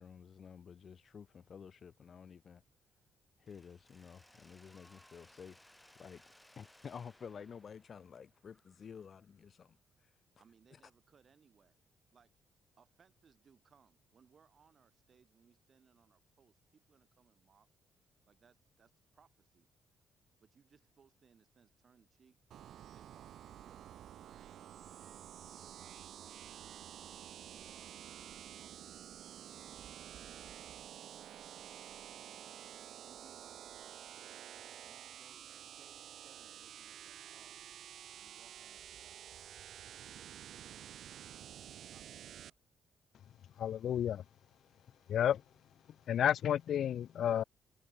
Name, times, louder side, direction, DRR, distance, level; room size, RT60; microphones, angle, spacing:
voice 1, 0.0-2.6 3.4-5.6 6.0-6.2 6.6-9.8, left 7 dB, 50° left, 1.0 m, -51 dB
Mechanisms, 3.5-9.3, left 1 dB, 5° left, 7.7 m, -64 dB
voice 2, 10.4-11.8 12.1-12.4 12.8-17.7 18.2-19.7 20.4-22.4 22.7-27.1 27.5-30.6 33.0-34.5 34.8-37.8 38.1-39.3 39.8-41.3 41.9-42.5, right 6 dB, 45° right, 4.4 m, -68 dB
sound 1, 22.5-42.5, right 11 dB, 70° right, 1.5 m, -50 dB
voice 3, 43.6-44.2 45.1-45.4 46.1-47.4, left 10 dB, 65° left, 0.4 m, -31 dB
cardioid pair, 90°, 0 cm